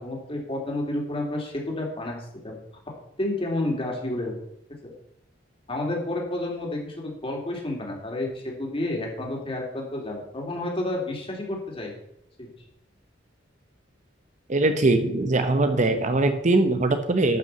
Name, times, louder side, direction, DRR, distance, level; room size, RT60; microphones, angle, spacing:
voice 1, 0.0-2.2 2.4-2.6 3.2-4.4 4.8-4.9 5.7-11.9 12.4-12.5, left 1 dB, 30° left, -1 dB, 3.4 m, -30 dB
voice 2, 14.5-17.4, right 2 dB, 40° right, 8 dB, 0.9 m, -21 dB
12.5 x 5.9 x 6.8 m, 0.76 s
head